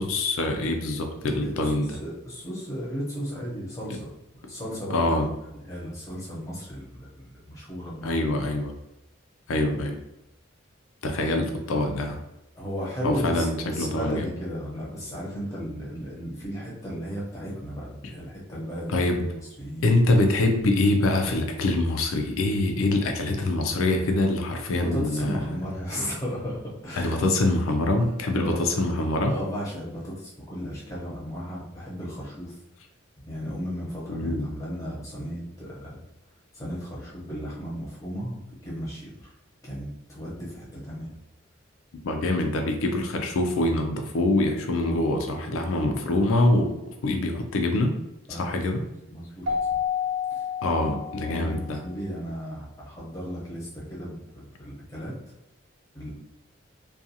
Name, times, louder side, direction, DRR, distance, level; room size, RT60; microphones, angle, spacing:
voice 1, 0.0-1.9 4.9-5.3 8.0-8.7 9.5-10.0 11.0-12.2 13.0-14.3 18.9-19.3 19.8-25.6 27.0-29.3 34.1-34.5 42.0-46.7 47.0-47.9 48.3-48.8 50.6-51.8, left 2 dB, 90° left, 4 dB, 0.4 m, -24 dB
voice 2, 1.3-4.1 4.5-5.0 5.5-8.2 12.6-19.0 19.6-19.9 24.7-27.2 28.4-28.7 29.3-32.6 33.2-36.0 36.5-39.3 39.6-41.1 44.8-45.1 45.8-45.9 48.3-48.8 49.1-49.4 50.3-50.5 50.8-51.0 51.3-55.1 55.9-56.1, equal, 15° left, -6 dB, 0.8 m, -35 dB
Keyboard (musical), 49.5-51.7, left 7 dB, 60° right, 0.5 m, -29 dB
2.4 x 2.3 x 2.7 m, 0.91 s
head